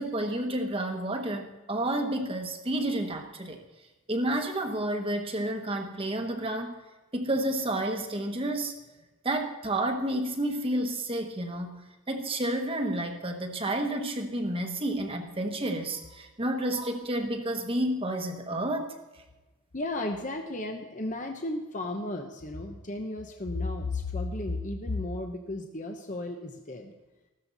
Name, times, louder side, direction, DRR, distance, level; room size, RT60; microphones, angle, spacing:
voice 1, 0.0-3.6 4.1-6.8 7.1-8.7 9.2-19.0, right 1 dB, 25° right, 4 dB, 1.2 m, -30 dB
voice 2, 19.7-26.9, left 2 dB, 35° left, 3 dB, 0.9 m, -34 dB
15.5 x 13.0 x 4.1 m, 1.1 s
head